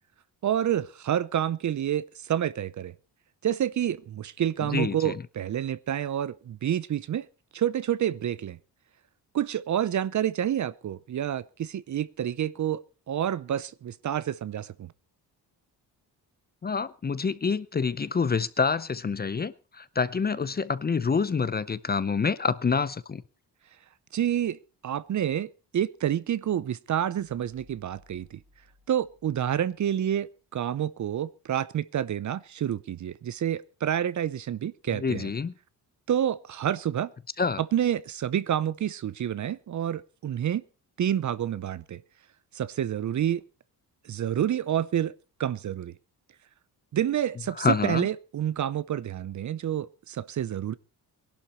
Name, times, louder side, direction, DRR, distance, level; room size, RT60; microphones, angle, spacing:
voice 1, 0.4-2.9 3.4-7.3 7.5-8.6 9.3-12.8 13.1-14.9 24.1-25.5 25.7-28.4 28.9-35.3 36.1-37.1 37.6-40.6 41.0-42.0 42.5-43.4 44.0-45.1 45.4-45.9 46.9-50.7, right 10 dB, 45° right, 0.7 m, -28 dB
voice 2, 4.7-5.1 16.6-23.2 34.9-35.5 37.4-37.6 47.6-48.1, left 5 dB, 25° left, 0.6 m, -27 dB
sound 1, 27.2-30.5, left 1 dB, 65° right, 5.2 m, -62 dB
21.0 x 11.5 x 4.2 m
wide cardioid pair, 150°, 40 cm